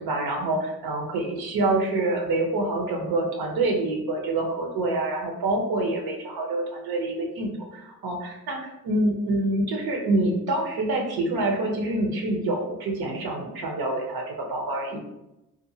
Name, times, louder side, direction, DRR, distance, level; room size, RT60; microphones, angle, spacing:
voice 1, 0.0-8.6 8.8-15.0, right 2 dB, 70° right, 1 dB, 0.8 m, -26 dB
2.5 x 2.5 x 2.7 m, 0.93 s
supercardioid pair, 45°, 39 cm